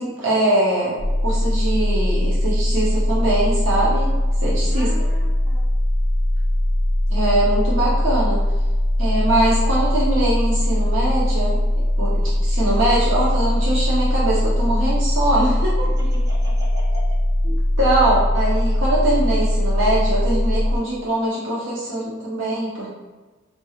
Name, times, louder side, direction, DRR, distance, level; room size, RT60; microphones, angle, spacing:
voice 1, 0.0-4.1 4.4-4.9 7.1-8.4 9.0-11.6 12.0-15.9 17.4-22.9, right 1 dB, 85° right, -6 dB, 0.7 m, -22 dB
sound 1, 1.0-20.8, left 1 dB, 60° left, 0.5 m, -20 dB
voice 2, 4.7-5.6 15.8-17.2, left 1 dB, 60° right, -5 dB, 1.1 m, -38 dB
4.3 x 2.3 x 3.1 m, 1.3 s
head